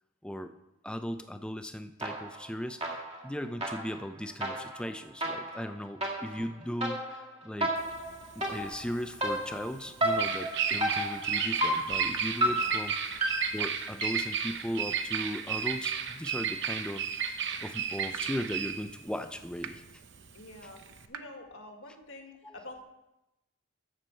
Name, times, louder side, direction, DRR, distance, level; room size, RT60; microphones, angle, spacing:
voice 1, 0.8-7.8 8.4-19.8 22.4-22.6, equal, 5° left, 8 dB, 0.5 m, -38 dB
sound 1, 2.0-2.5 2.8-14.4, right 1 dB, 30° right, 2.0 m, -33 dB
Bird vocalization bird call bird song, 7.8-21.1, right 7 dB, 55° right, 0.8 m, -33 dB
sound 2, 12.1-12.2 13.6-13.7 15.1-15.2 16.6-16.7 18.1-18.2 19.6-19.7 21.1-21.2, right 8 dB, 90° right, 0.7 m, -39 dB
voice 2, 12.4-12.8 20.3-20.8 21.1-22.8, left 2 dB, 60° left, 3 dB, 1.8 m, -47 dB
13.0 x 7.9 x 4.5 m, 0.93 s
head